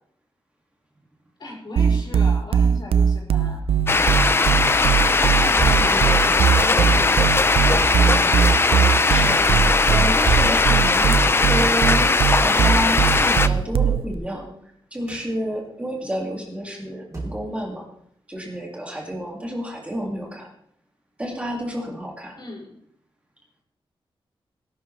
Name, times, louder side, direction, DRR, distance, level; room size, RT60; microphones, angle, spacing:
voice 1, 1.4-3.6 5.2-7.2 22.4-22.8, left 2 dB, 50° left, -2 dB, 5.3 m, -36 dB
sound 1, 1.8-14.1, right 7 dB, 85° right, 0.6 m, -20 dB
sound 2, 3.9-13.5, left 3 dB, 25° left, 0.5 m, -19 dB
sound 3, 5.6-6.0 7.8-8.1 10.2-10.6 12.9-13.2 15.1-15.3 17.1-17.4, right 3 dB, 35° right, 3.1 m, -29 dB
voice 2, 5.8-6.3 9.1-9.4 9.8-11.1 11.5-12.1 12.4-17.8 18.3-20.5 21.2-22.4, equal, 15° right, -1 dB, 2.1 m, -30 dB
19.0 x 12.0 x 3.2 m, 0.71 s
wide cardioid pair, 175°, 9 cm